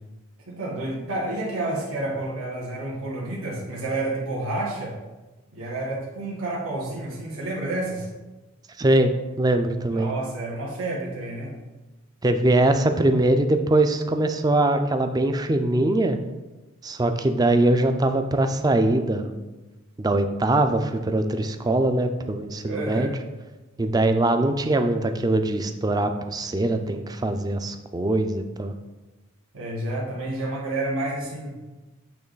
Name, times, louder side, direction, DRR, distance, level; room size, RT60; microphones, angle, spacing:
voice 1, 0.5-5.0 5.5-8.1 9.9-11.5 22.6-23.1 29.5-31.6, right 2 dB, 80° right, -4 dB, 1.4 m, -30 dB
voice 2, 8.8-10.1 12.2-16.2 16.8-19.3 20.0-23.1 23.8-28.7, right 2 dB, 20° right, 7 dB, 0.3 m, -22 dB
8.8 x 3.1 x 3.9 m, 1.1 s
head